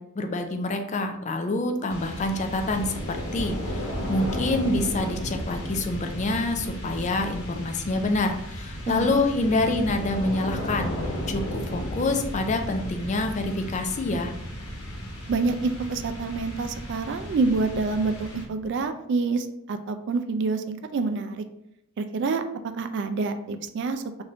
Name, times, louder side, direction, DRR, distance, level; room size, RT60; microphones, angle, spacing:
voice 1, 0.2-10.9 11.3-14.3, left 2 dB, 35° left, 5 dB, 0.4 m, -27 dB
sound 1, 1.9-18.8, equal, 85° left, 1.0 m, -34 dB
voice 2, 8.9-9.2 15.3-21.4 22.0-22.4 22.7-24.2, right 3 dB, 55° right, 8 dB, 0.3 m, -27 dB
3.4 x 2.6 x 3.8 m, 0.80 s
head